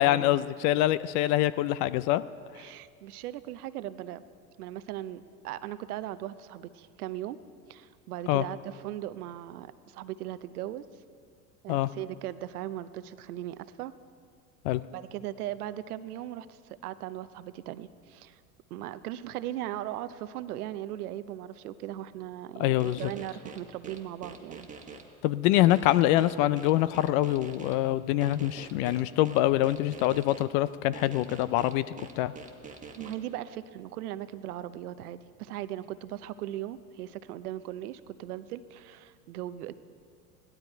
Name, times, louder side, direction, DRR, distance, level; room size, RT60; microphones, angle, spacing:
voice 1, 0.0-2.2 8.3-8.4 11.7-11.9 14.6-14.8 22.6-23.1 25.2-31.8 32.2-32.3, left 14 dB, 55° left, 17 dB, 0.5 m, -25 dB
voice 2, 2.6-4.2 4.6-7.4 7.7-10.9 11.6-13.9 14.9-18.4 18.7-24.9 33.0-39.7, right 13 dB, 80° right, 14 dB, 0.7 m, -38 dB
sound 1, 22.8-25.0 25.5-27.7 28.2-30.4 30.9-33.1, right 5 dB, 15° right, 1.4 m, -45 dB
16.5 x 12.0 x 4.5 m, 2.2 s
hypercardioid pair, 95°, 44 cm